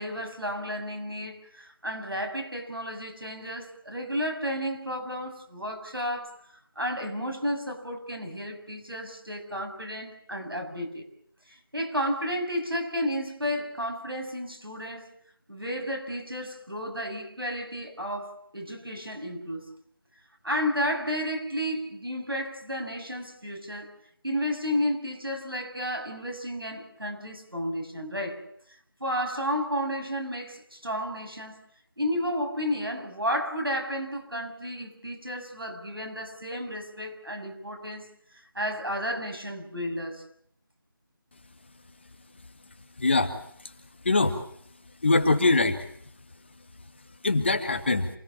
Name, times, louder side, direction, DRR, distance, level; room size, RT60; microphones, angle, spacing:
voice 1, 0.0-6.5 6.8-11.0 11.5-15.1 15.5-19.7 20.4-23.9 24.2-28.4 29.0-31.6 32.0-38.1 38.5-40.2, equal, 90° right, 7.1 m, -32 dB
voice 2, 43.0-43.3 44.1-44.4 45.0-45.8 47.2-48.1, left 3 dB, 30° left, 1.9 m, -22 dB
27.5 x 18.0 x 7.5 m
figure-of-eight pair, 165°, 12 cm